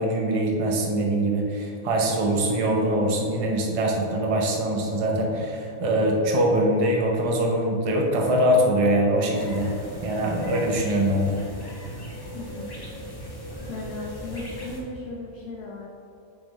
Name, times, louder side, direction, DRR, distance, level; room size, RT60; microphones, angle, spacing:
voice 1, 0.0-9.7 10.0-11.4, right 1 dB, 35° right, 0 dB, 0.6 m, -23 dB
sound 1, 9.3-14.8, equal, 20° left, 0.7 m, -38 dB
voice 2, 12.3-12.7 13.7-15.9, left 3 dB, 70° left, -1 dB, 1.0 m, -36 dB
6.8 x 3.5 x 4.0 m, 2.7 s
omnidirectional pair, 1.4 m